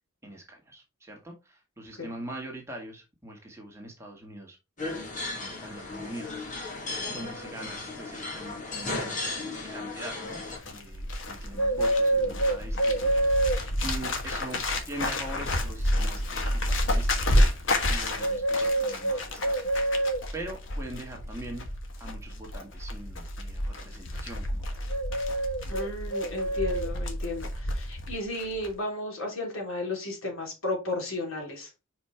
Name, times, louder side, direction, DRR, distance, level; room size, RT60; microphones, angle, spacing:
voice 1, 0.2-4.6 4.8-6.8 7.1-10.4 10.7-21.7 22.0-24.9, right 1 dB, 15° right, 0 dB, 1.7 m, -43 dB
sound 1, 4.8-10.6, left 3 dB, 35° left, 2.0 m, -35 dB
Bird, 10.3-28.1 28.4-28.7, equal, 65° left, 1.4 m, -28 dB
voice 2, 25.7-31.7, left 2 dB, 80° left, 0 dB, 3.0 m, -34 dB
5.3 x 5.0 x 4.4 m, 0.26 s
head